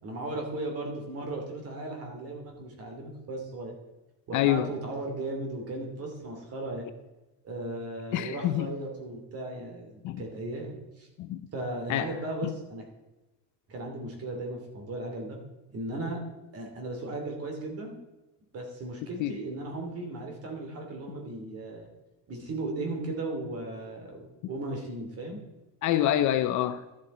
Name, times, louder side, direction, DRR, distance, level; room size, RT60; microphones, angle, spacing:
voice 1, 0.0-3.7 4.3-6.8 7.4-11.1 11.5-12.8 13.7-15.4 15.7-16.2 16.5-18.0 18.5-21.9 22.3-25.4, right 2 dB, 35° right, 2.8 m, -36 dB
voice 2, 4.3-4.7 8.1-8.7 10.0-10.2 11.3-11.4 11.9-12.1 19.2-19.3 25.8-26.8, left 12 dB, 50° left, 0.6 m, -26 dB
12.5 x 7.6 x 4.3 m
cardioid pair, 165°, 40 cm